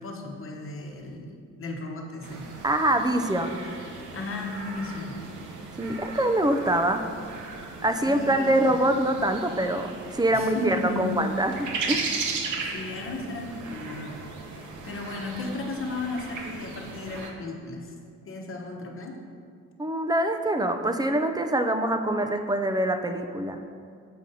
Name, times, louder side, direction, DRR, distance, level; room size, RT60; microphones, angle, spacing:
voice 1, 0.0-2.5 3.9-5.1 8.0-8.7 10.3-11.2 11.9-12.3 12.7-14.2 14.5-17.9 18.3-19.2, left 2 dB, 45° left, 1 dB, 1.1 m, -35 dB
sound 1, 2.2-17.3, right 4 dB, 80° right, 0.9 m, -37 dB
voice 2, 2.6-3.6 5.8-7.0 7.8-12.0 19.8-23.6, right 1 dB, 15° right, 6 dB, 0.5 m, -24 dB
7.5 x 5.1 x 4.1 m, 2.3 s
cardioid pair, 90°, 30 cm